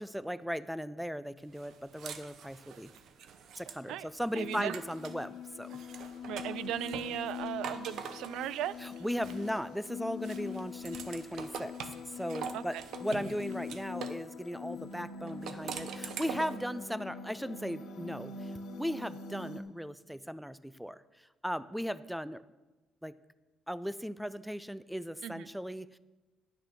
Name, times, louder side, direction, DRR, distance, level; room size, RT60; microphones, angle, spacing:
voice 1, 0.0-2.9 3.6-5.8 8.8-11.7 12.2-21.0 21.4-22.4 23.0-23.1 23.7-26.0, equal, ahead, 16 dB, 0.3 m, -37 dB
sound 1, 1.6-5.2 5.6-9.8 10.2-14.2 15.3-16.7, right 7 dB, 60° right, 0.8 m, -45 dB
sound 2, 4.3-19.6, left 6 dB, 80° left, 1.1 m, -43 dB
voice 2, 4.3-4.8 6.3-9.0 11.0-11.1 12.5-12.8 25.2-25.5, right 12 dB, 90° right, 18 dB, 0.4 m, -37 dB
10.5 x 6.6 x 6.2 m, 1.1 s
cardioid pair, 160°, 0 cm